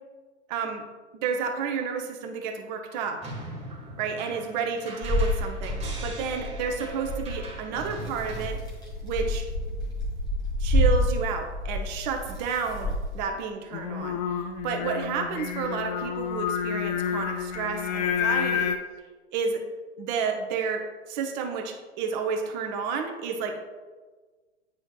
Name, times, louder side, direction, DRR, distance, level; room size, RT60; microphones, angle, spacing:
voice 1, 0.5-0.8 1.1-3.2 4.0-8.6 9.0-9.5 10.6-14.2 14.6-18.7 19.3-19.6 20.0-23.6, right 5 dB, 40° right, 4 dB, 0.8 m, -31 dB
sound 1, 3.2-8.4, right 2 dB, 20° right, 1.9 m, -41 dB
sound 2, 5.0-13.2, left 1 dB, 10° left, 1.7 m, -29 dB
Singing, 13.7-18.8, left 8 dB, 40° left, 0.5 m, -29 dB
9.4 x 4.4 x 2.3 m, 1.4 s
figure-of-eight pair, 95°, 34 cm